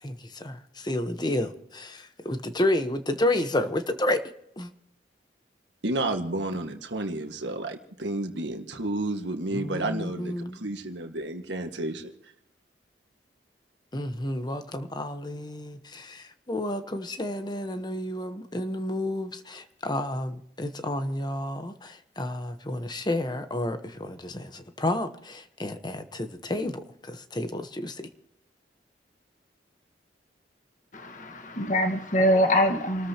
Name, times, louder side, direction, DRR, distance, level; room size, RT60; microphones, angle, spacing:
voice 1, 0.0-4.2 4.6-4.7 9.5-10.6 13.9-28.1, left 1 dB, 25° left, 1.0 m, -31 dB
voice 2, 5.8-12.3, right 2 dB, 80° right, 1.7 m, -31 dB
voice 3, 30.9-33.1, equal, 45° left, 1.5 m, -24 dB
28.5 x 13.5 x 2.9 m
head